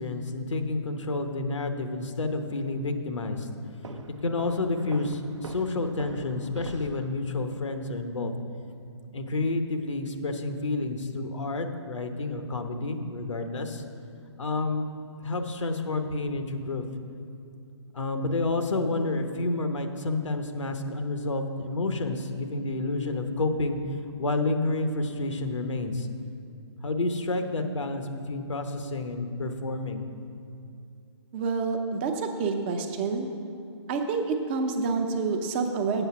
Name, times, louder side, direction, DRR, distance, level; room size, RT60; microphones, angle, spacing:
voice 1, 0.0-3.5 3.9-8.3 9.1-13.8 14.4-14.9 15.2-16.8 17.9-23.8 24.2-26.1 26.8-30.0, left 2 dB, 90° left, 6 dB, 1.0 m, -29 dB
Walk footsteps, 3.8-7.1, right 3 dB, 85° right, 0.8 m, -42 dB
voice 2, 31.3-33.3 33.9-36.0, right 4 dB, 20° right, 5 dB, 0.6 m, -28 dB
7.9 x 7.1 x 5.8 m, 2.6 s
hypercardioid pair, 155°, 15 cm